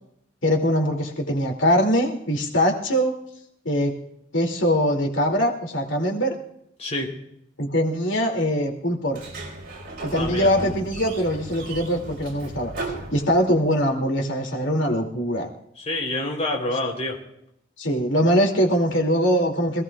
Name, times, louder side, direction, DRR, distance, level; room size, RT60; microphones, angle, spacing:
voice 1, 0.4-3.1 3.6-3.9 4.3-6.3 7.6-9.2 10.0-12.7 13.1-15.5 17.8-19.8, equal, 75° left, 1 dB, 2.7 m, -22 dB
voice 2, 6.8-7.1 10.2-10.5 15.8-17.2, left 1 dB, 35° left, -1 dB, 3.5 m, -27 dB
Sliding door, 9.1-13.8, right 2 dB, 50° right, 4.2 m, -35 dB
26.0 x 17.5 x 2.4 m, 0.76 s
head